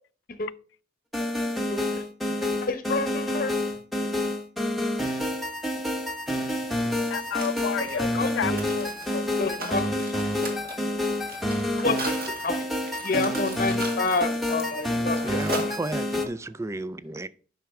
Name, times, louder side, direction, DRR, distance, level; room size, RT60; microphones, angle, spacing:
sound 1, 1.1-16.3, left 1 dB, ahead, 0.9 m, -28 dB
voice 1, 1.7-2.0 2.4-3.5 8.1-8.7 9.4-10.1 11.8-12.1 12.4-12.7 13.0-15.7, left 3 dB, 50° left, 0.9 m, -29 dB
Mechanisms, 6.5-16.3, right 2 dB, 55° right, 2.1 m, -39 dB
voice 2, 7.1-8.1 8.4-9.6, left 7 dB, 75° left, 0.4 m, -32 dB
voice 3, 15.2-17.3, right 2 dB, 15° right, 0.3 m, -34 dB
10.5 x 6.0 x 3.5 m
head